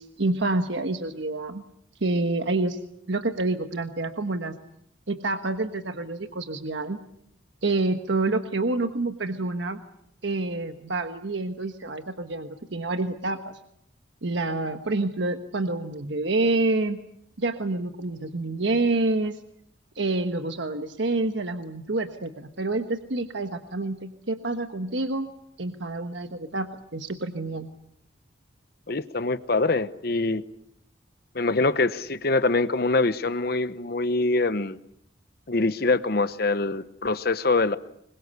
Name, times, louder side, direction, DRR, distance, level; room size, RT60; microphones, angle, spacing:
voice 1, 0.0-1.6 2.0-2.8 3.1-4.5 5.1-7.0 7.6-9.8 10.2-13.6 14.2-17.0 17.4-19.4 19.9-25.3 25.6-27.7, right 2 dB, 70° right, 7 dB, 1.3 m, -28 dB
voice 2, 28.9-30.4 31.3-34.8 35.5-37.8, left 3 dB, 50° left, 13 dB, 0.9 m, -24 dB
25.5 x 23.0 x 8.2 m, 0.75 s
head